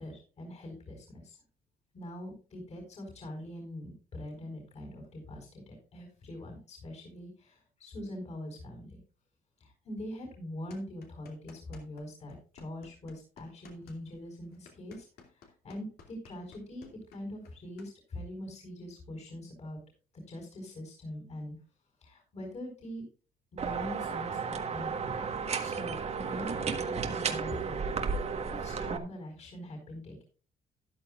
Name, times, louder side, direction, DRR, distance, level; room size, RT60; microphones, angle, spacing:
voice 1, 0.0-1.4 1.9-9.0 9.6-15.1 15.3-19.8 20.1-21.6 22.0-23.0 23.5-28.2 28.5-30.2, left 1 dB, 40° left, 2 dB, 4.5 m, -43 dB
sound 1, 10.7-12.0 12.3-17.9, left 5 dB, 65° left, 2.6 m, -55 dB
sound 2, 23.6-29.0, right 5 dB, 40° right, 1.4 m, -33 dB
13.5 x 11.0 x 2.5 m, 0.36 s
cardioid pair, 110°, 17 cm